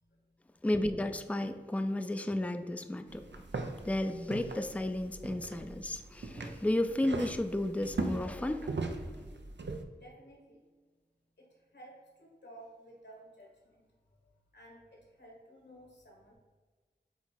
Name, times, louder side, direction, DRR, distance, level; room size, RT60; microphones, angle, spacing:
voice 1, 0.0-0.6 9.9-10.6 11.4-13.9 14.5-16.3, right 1 dB, 75° left, -2 dB, 1.9 m, -55 dB
voice 2, 0.6-3.2 3.8-9.2, left 1 dB, 10° left, 8 dB, 0.4 m, -33 dB
sound 1, 3.1-9.8, right 3 dB, 90° right, 0.6 m, -40 dB
7.9 x 2.8 x 4.5 m, 1.4 s
wide cardioid pair, 50°, 18 cm